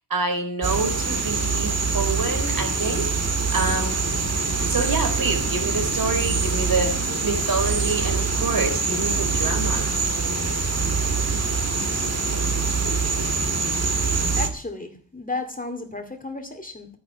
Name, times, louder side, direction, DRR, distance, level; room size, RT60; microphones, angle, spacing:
voice 1, 0.1-3.9 4.7-9.9, right 3 dB, 55° right, 5 dB, 4.4 m, -27 dB
sound 1, 0.6-14.5, right 4 dB, 40° right, 2.1 m, -24 dB
voice 2, 14.4-16.9, left 3 dB, 20° left, 5 dB, 2.4 m, -33 dB
13.0 x 10.0 x 8.1 m, 0.43 s
wide cardioid pair, 130°, 40 cm